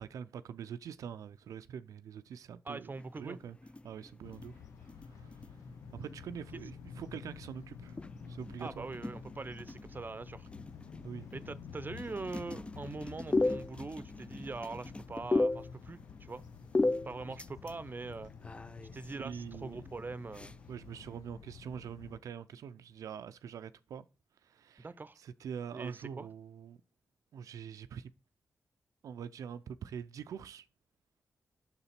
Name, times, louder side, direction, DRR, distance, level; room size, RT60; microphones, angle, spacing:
voice 1, 0.0-2.9 3.2-3.6 3.8-4.6 5.1-5.4 5.9-8.0 8.3-8.8 11.0-11.3 19.1-19.8 20.7-24.1 24.4-24.9 25.2-26.8 27.3-28.1 29.0-30.7, right 8 dB, 85° right, 0.4 m, -44 dB
voice 2, 2.6-3.4 8.6-10.5 11.3-16.4 17.0-18.3 18.9-20.5 24.8-25.2 25.7-26.3, right 3 dB, 35° right, 0.6 m, -43 dB
sound 1, 2.9-21.2, left 2 dB, 20° left, 0.3 m, -39 dB
sound 2, 4.2-22.2, left 6 dB, 85° left, 0.5 m, -51 dB
5.9 x 4.0 x 5.7 m
cardioid pair, 50°, 6 cm